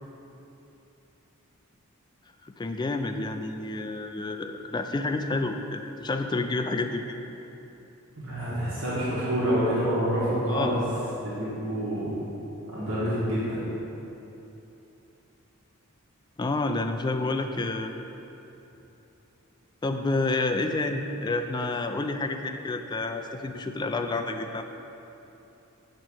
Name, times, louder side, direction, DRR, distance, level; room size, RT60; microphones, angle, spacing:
voice 1, 2.5-7.2 10.5-10.8 16.4-17.9 19.8-24.6, left 2 dB, 20° left, 6 dB, 0.3 m, -29 dB
voice 2, 8.2-10.8 11.2-12.1 12.7-13.6, equal, 65° right, -10 dB, 1.7 m, -27 dB
7.0 x 4.5 x 6.3 m, 3.0 s
head